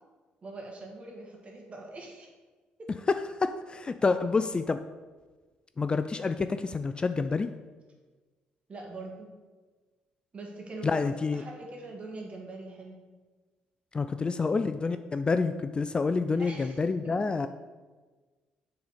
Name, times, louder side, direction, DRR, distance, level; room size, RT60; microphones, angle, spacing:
voice 1, 0.4-2.3 2.8-2.9 8.7-9.3 10.3-13.0 14.2-14.6 16.4-16.8 17.0-17.5, right 2 dB, 40° right, 0 dB, 1.9 m, -43 dB
voice 2, 3.1-4.8 5.8-7.5 10.8-11.4 13.9-17.5, left 4 dB, 30° left, 10 dB, 0.3 m, -28 dB
6.7 x 4.1 x 5.0 m, 1.3 s
supercardioid pair, 65°, 3 cm